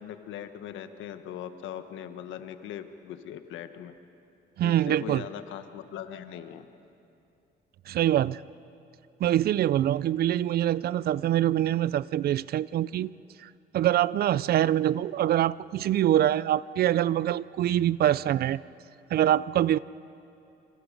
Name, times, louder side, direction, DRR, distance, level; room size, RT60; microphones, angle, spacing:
voice 1, 0.0-3.9 4.6-6.7, left 9 dB, 85° left, 9 dB, 1.4 m, -40 dB
voice 2, 4.6-5.2 7.9-8.4 9.2-13.1 13.4-18.6 19.1-19.8, right 12 dB, 55° right, 20 dB, 0.4 m, -24 dB
27.0 x 26.0 x 5.3 m, 2.7 s
cardioid pair, 135°, 19 cm